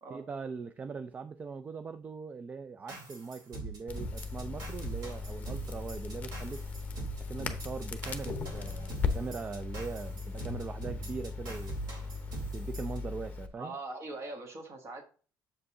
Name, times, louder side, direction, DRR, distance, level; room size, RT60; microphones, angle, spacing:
voice 1, 0.1-6.6 7.3-11.9 12.5-13.8, right 5 dB, 20° right, 0.3 m, -41 dB
sound 1, 2.9-13.0, right 3 dB, 60° right, 3.0 m, -43 dB
Crackle, 3.9-13.5, left 4 dB, 20° left, 0.8 m, -38 dB
voice 2, 13.6-15.0, right 2 dB, 35° right, 1.5 m, -41 dB
7.2 x 5.2 x 3.7 m
cardioid pair, 160°, 7 cm